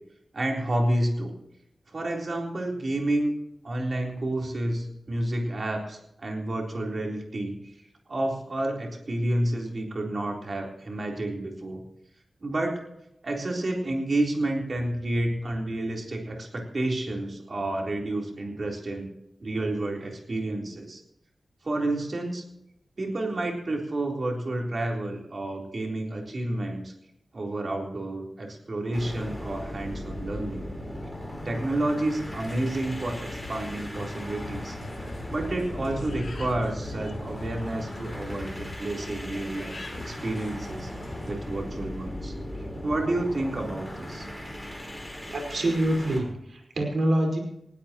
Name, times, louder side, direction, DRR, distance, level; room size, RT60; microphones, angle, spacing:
voice 1, 0.3-1.3 1.9-3.3 3.6-11.8 12.4-12.8 13.2-19.1 19.4-21.0 21.6-22.4 23.0-26.9 27.3-30.6 31.4-34.8 35.1-40.9 41.3-42.3 42.8-44.3, right 1 dB, 50° right, 0 dB, 3.8 m, -30 dB
sound 1, 28.9-46.3, equal, 5° left, 4.3 m, -38 dB
sound 2, 32.2-41.3, left 3 dB, 50° left, 2.8 m, -42 dB
voice 2, 45.3-47.4, right 1 dB, 70° right, 2 dB, 4.8 m, -26 dB
20.0 x 16.5 x 3.0 m, 0.80 s
wide cardioid pair, 115°, 0 cm